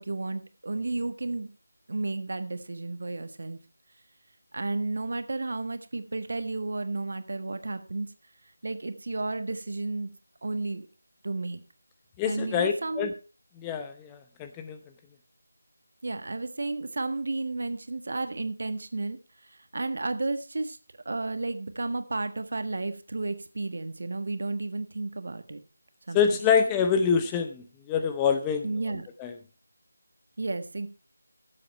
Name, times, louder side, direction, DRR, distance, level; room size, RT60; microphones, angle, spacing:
voice 1, 0.0-1.5 1.9-3.6 4.5-8.1 8.6-10.1 10.4-10.9 11.2-11.6 12.2-13.1 16.0-19.2 19.5-20.8 21.0-25.6 26.1-26.4 28.6-29.1 30.4-30.9, right 2 dB, 55° right, 10 dB, 1.4 m, -32 dB
voice 2, 12.2-13.1 13.6-14.8 26.1-28.7 29.2-29.3, left 7 dB, 10° left, 8 dB, 0.7 m, -26 dB
16.0 x 7.7 x 4.4 m, 0.33 s
figure-of-eight pair, 165°, 0 cm